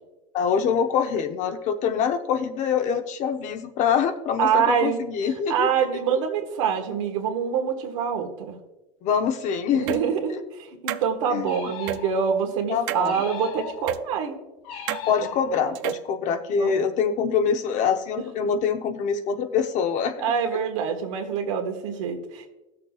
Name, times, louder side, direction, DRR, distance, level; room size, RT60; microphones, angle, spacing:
voice 1, 0.3-5.7 9.0-10.1 11.3-11.5 12.7-13.2 15.1-20.1, left 7 dB, 50° left, 7 dB, 0.9 m, -25 dB
voice 2, 4.4-5.0 5.5-8.6 9.7-14.4 15.0-15.1 16.6-16.7 20.2-22.5, right 7 dB, 85° right, 3 dB, 1.5 m, -25 dB
sound 1, 9.9-10.0 10.9-11.0 11.9-12.0 12.9-13.1 13.9-14.0 14.9-15.0 15.7-16.1, right 14 dB, 70° right, 0.5 m, -29 dB
sound 2, 11.4-12.5 13.0-14.1 14.6-15.8, left 10 dB, 75° left, 2.9 m, -38 dB
16.5 x 6.7 x 2.4 m, 1.0 s
supercardioid pair, 120°, 16 cm